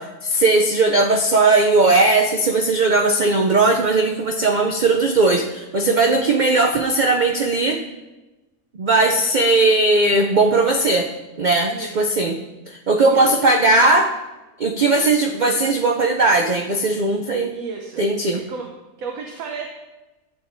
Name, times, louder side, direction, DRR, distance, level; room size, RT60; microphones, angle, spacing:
voice 1, 0.0-7.8 8.8-11.1 11.4-12.4 12.7-14.1 14.6-17.5 18.0-18.4, right 2 dB, 60° right, 3 dB, 0.4 m, -18 dB
voice 2, 13.0-13.3 13.6-13.7 17.5-18.0 18.3-18.7 19.0-19.7, right 5 dB, 80° right, 2 dB, 1.3 m, -33 dB
13.0 x 8.7 x 2.6 m, 1.1 s
omnidirectional pair, 1.5 m